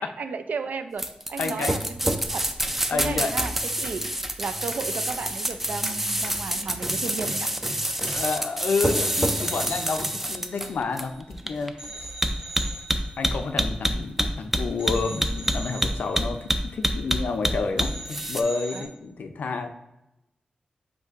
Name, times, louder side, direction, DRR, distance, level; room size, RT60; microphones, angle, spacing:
voice 1, 0.2-1.0 1.3-2.5 2.9-7.5 18.7-18.9, right 5 dB, 80° right, 9 dB, 0.4 m, -34 dB
sound 1, 1.0-18.4, right 1 dB, 10° right, 0.3 m, -26 dB
voice 2, 1.4-1.8 2.9-3.4 8.0-12.1 13.2-19.7, left 4 dB, 90° left, 5 dB, 0.5 m, -29 dB
sound 2, 6.6-7.1 7.3-7.5 8.0-11.3 11.8-14.4 14.8-17.5 17.8-18.9, right 2 dB, 35° right, 1.0 m, -42 dB
7.9 x 2.7 x 2.5 m, 0.89 s
wide cardioid pair, 115°, 3 cm